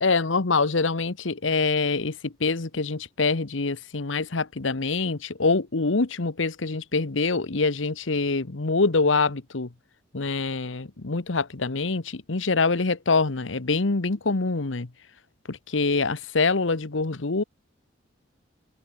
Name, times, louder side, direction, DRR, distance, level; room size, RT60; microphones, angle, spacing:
voice 1, 0.0-9.7 10.1-14.9 15.5-17.4, left 3 dB, 85° left, 1.1 m, -25 dB
open air
head